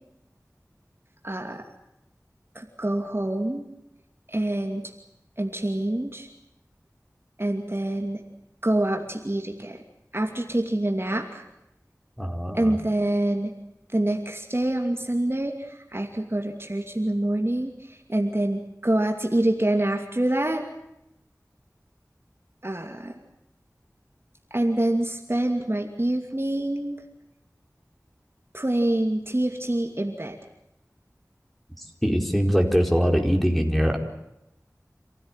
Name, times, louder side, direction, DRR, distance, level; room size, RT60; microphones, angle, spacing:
voice 1, 1.2-1.6 2.5-3.6 4.3-4.9 5.4-6.3 7.4-8.2 8.6-9.8 10.1-11.4 12.5-13.5 13.9-20.6 22.6-23.2 24.5-27.0 28.5-30.4, right 1 dB, 40° right, 3 dB, 2.6 m, -26 dB
voice 2, 12.2-12.7 32.0-34.0, equal, ahead, 3 dB, 4.6 m, -22 dB
27.5 x 16.0 x 9.1 m, 0.86 s
wide cardioid pair, 40°, 6 cm